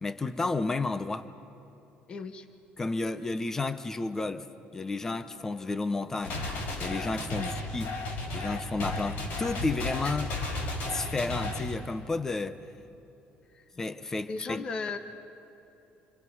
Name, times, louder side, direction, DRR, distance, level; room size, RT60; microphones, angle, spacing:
voice 1, 0.0-1.3 2.8-4.5 4.7-6.4 6.8-7.9 8.3-10.3 10.9-12.6 13.8-14.6, left 3 dB, 15° left, 11 dB, 0.7 m, -32 dB
voice 2, 2.1-2.5 7.4-7.5 10.0-10.2 13.5-13.6 14.3-15.0, left 4 dB, 30° left, 8 dB, 1.0 m, -36 dB
sound 1, 6.2-11.8, left 2 dB, 60° left, 4.3 m, -34 dB
28.5 x 25.5 x 5.5 m, 3.0 s
cardioid pair, 180°, 4 cm